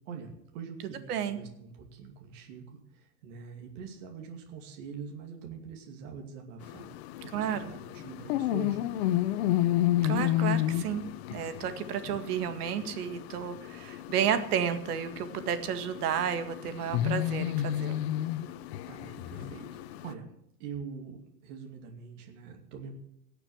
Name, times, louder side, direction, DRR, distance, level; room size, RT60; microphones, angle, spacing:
voice 1, 0.1-6.9 7.3-8.8 18.9-19.7 20.0-20.2 20.6-22.9, right 6 dB, 50° right, 2 dB, 2.6 m, -44 dB
sound 1, 6.6-20.1, left 13 dB, 45° left, 0.7 m, -32 dB
voice 2, 7.3-7.7 10.0-18.0, right 8 dB, 75° right, 9 dB, 2.0 m, -32 dB
18.0 x 6.9 x 8.0 m, 0.77 s
supercardioid pair, 165°, 46 cm